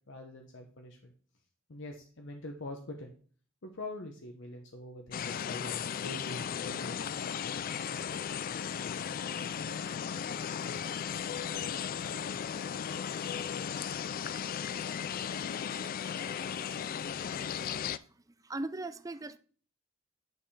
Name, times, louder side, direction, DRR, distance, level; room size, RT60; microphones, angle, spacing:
voice 1, 0.1-1.1 1.7-3.1 3.6-6.9, left 1 dB, 65° left, 0.9 m, -44 dB
sound 1, 5.1-18.0, left 8 dB, 45° left, 0.3 m, -36 dB
voice 2, 17.8-19.4, right 2 dB, 15° right, 0.5 m, -40 dB
9.2 x 5.6 x 3.2 m
head